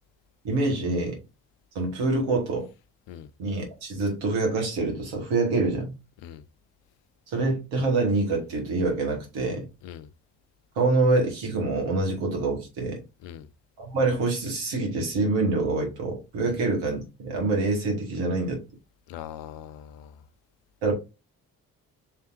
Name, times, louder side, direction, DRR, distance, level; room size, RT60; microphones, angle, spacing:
voice 1, 0.4-1.2 1.8-2.7 3.4-6.0 7.3-9.7 10.8-13.0 13.8-18.6 20.8-20.9, right 3 dB, 75° right, 2.0 m, -26 dB
voice 2, 19.1-20.2, left 10 dB, 70° left, 0.7 m, -41 dB
5.6 x 3.4 x 2.7 m
hypercardioid pair, 40°, 45 cm